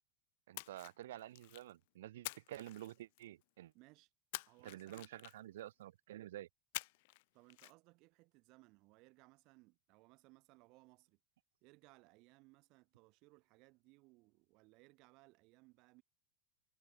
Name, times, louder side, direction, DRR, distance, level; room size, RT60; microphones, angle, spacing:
Splash splatter, 0.5-1.7 2.2-3.4 4.3-5.6 6.7-7.2 7.5-7.7, left 23 dB, 65° left, 2.3 m, -48 dB
voice 1, 0.5-3.7 4.6-6.5, right 13 dB, 85° right, 1.1 m, -50 dB
voice 2, 3.7-4.1 4.5-5.1 7.3-11.2 11.6-16.0, right 24 dB, 50° right, 6.2 m, -65 dB
supercardioid pair, 125°, 0 cm